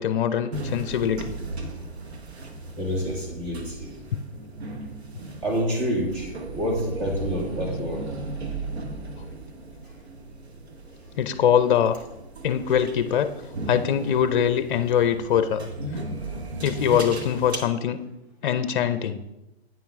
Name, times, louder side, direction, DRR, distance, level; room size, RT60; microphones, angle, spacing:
voice 1, 0.0-1.3 4.1-4.2 11.2-12.0 12.4-13.3 13.7-15.7 16.6-18.0 18.4-19.2, left 9 dB, 50° left, 12 dB, 0.6 m, -23 dB
sound 1, 0.5-17.6, right 2 dB, 80° right, 1.3 m, -36 dB
voice 2, 2.8-3.9 5.4-8.1, equal, 30° right, -1 dB, 2.1 m, -28 dB
8.8 x 5.8 x 3.6 m, 0.95 s
hypercardioid pair, 150°, 32 cm